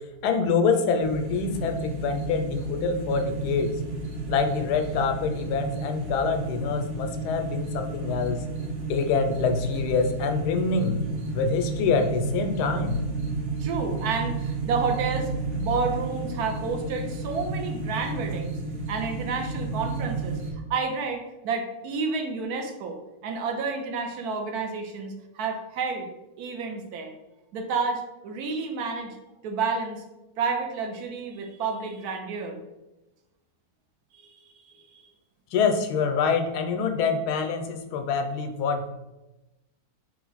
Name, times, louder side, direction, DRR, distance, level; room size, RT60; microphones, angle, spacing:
voice 1, 0.2-3.7 4.3-8.4 8.9-11.0 11.3-13.0 35.5-38.9, left 5 dB, 90° left, 6 dB, 1.1 m, -25 dB
sound 1, 1.0-20.5, right 3 dB, 55° right, 1.0 m, -32 dB
voice 2, 13.6-15.3 15.6-18.5 18.9-20.4 20.7-26.1 26.4-27.1 27.5-29.2 29.4-30.0 30.4-32.6 34.1-35.0, right 4 dB, 75° right, 4 dB, 1.2 m, -30 dB
3.5 x 3.0 x 3.9 m, 1.0 s
omnidirectional pair, 1.6 m